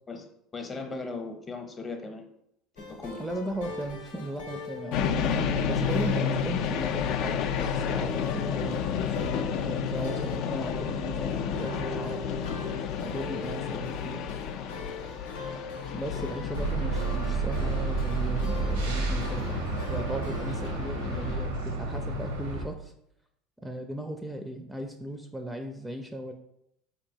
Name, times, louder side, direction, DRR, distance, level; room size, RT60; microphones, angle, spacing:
voice 1, 0.5-2.3 2.8-3.2, left 3 dB, 30° left, 4 dB, 0.7 m, -37 dB
sound 1, 2.8-20.7, left 3 dB, 85° left, 0.6 m, -43 dB
voice 2, 3.2-5.3 5.7-8.8 9.1-12.2 13.0-14.3 15.9-22.9 23.6-26.3, right 1 dB, 10° right, 5 dB, 0.4 m, -37 dB
sound 2, 4.9-21.5, left 7 dB, 60° left, 0.3 m, -31 dB
sound 3, 16.5-22.6, right 3 dB, 80° right, 0.7 m, -30 dB
4.2 x 2.9 x 2.7 m, 0.77 s
hypercardioid pair, 75°, 0 cm